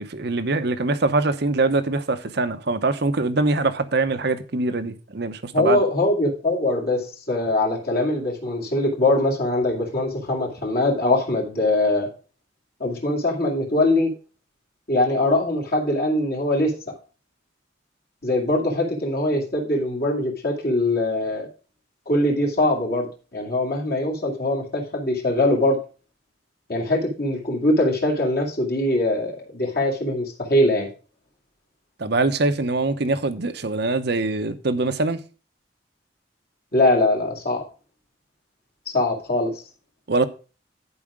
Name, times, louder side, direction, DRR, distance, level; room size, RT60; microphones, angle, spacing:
voice 1, 0.0-5.8 32.0-35.2 40.1-40.3, right 3 dB, 60° right, 0.9 m, -23 dB
voice 2, 5.5-12.1 12.8-14.1 14.9-16.7 18.2-21.5 22.1-23.1 23.3-25.8 26.7-30.9 36.7-37.6 38.9-39.6, left 1 dB, 55° left, 2.3 m, -22 dB
11.0 x 4.9 x 4.8 m
head